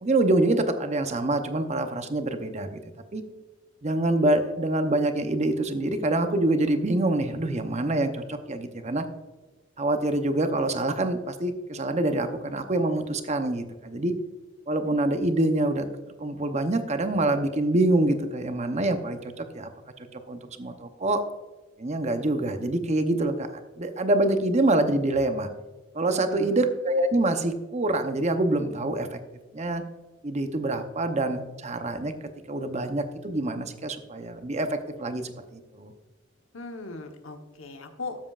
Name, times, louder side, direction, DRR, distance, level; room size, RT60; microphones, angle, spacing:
voice 1, 0.0-2.8 3.1-3.2 3.8-9.0 9.8-14.1 14.7-15.9 16.2-19.7 20.1-21.2 21.8-23.5 23.8-25.5 25.9-29.2 29.5-29.8 30.2-32.1 32.5-35.9, right 2 dB, 35° right, 8 dB, 0.7 m, -26 dB
voice 2, 26.1-26.6 36.5-38.2, left 3 dB, 90° left, 5 dB, 1.1 m, -38 dB
12.5 x 7.5 x 2.4 m, 1.2 s
head